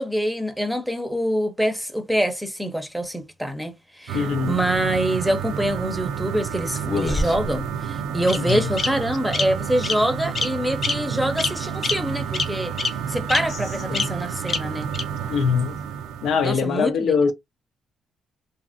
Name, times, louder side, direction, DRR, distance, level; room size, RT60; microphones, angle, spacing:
voice 1, 0.0-12.7 13.1-14.9 16.4-17.2, right 1 dB, ahead, 0.7 m, -25 dB
voice 2, 4.1-4.6 8.4-8.7 13.9-14.1 15.3-15.8 16.2-17.3, left 6 dB, 75° left, 0.6 m, -22 dB
sound 1, 4.1-16.5, right 8 dB, 90° right, 0.4 m, -30 dB
Bird vocalization bird call bird song, 6.8-7.6 8.3-8.4 8.8-8.9 9.3-9.4 9.8-10.0 10.3-10.5 10.8-10.9 11.4-11.5 11.8-11.9 12.3-12.4 12.8-12.9 13.3-13.4 13.9-14.0 14.5-14.6 14.9-15.0, left 4 dB, 45° left, 0.8 m, -24 dB
2.8 x 2.5 x 2.5 m
cardioid pair, 90°, 0 cm